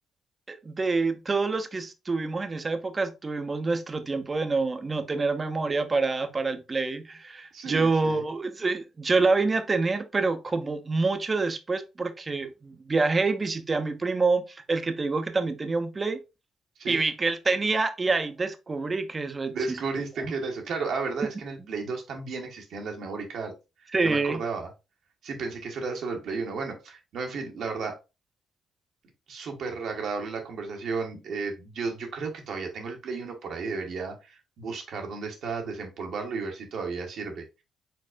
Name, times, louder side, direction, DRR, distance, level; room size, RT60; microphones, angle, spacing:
voice 1, 0.5-16.2 16.9-20.3 23.9-24.4, right 3 dB, 35° right, 0.7 m, -27 dB
voice 2, 7.5-8.2 16.8-17.0 19.5-23.5 23.8-24.7 25.2-28.0 29.3-37.4, right 4 dB, 65° right, 1.1 m, -33 dB
4.4 x 4.0 x 2.5 m
hypercardioid pair, 45°, 0 cm